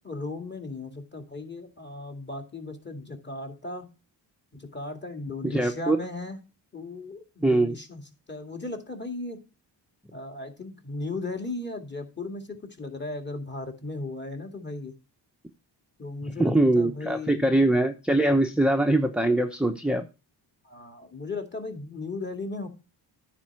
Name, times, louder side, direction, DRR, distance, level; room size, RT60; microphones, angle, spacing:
voice 1, 0.0-3.9 4.5-6.4 6.7-8.0 8.3-9.4 10.1-14.9 16.0-17.7 20.6-22.7, left 2 dB, 25° left, 2.3 m, -36 dB
voice 2, 5.4-6.0 7.4-7.8 16.4-20.1, right 1 dB, ahead, 0.8 m, -22 dB
9.9 x 4.4 x 6.0 m
cardioid pair, 65°, 43 cm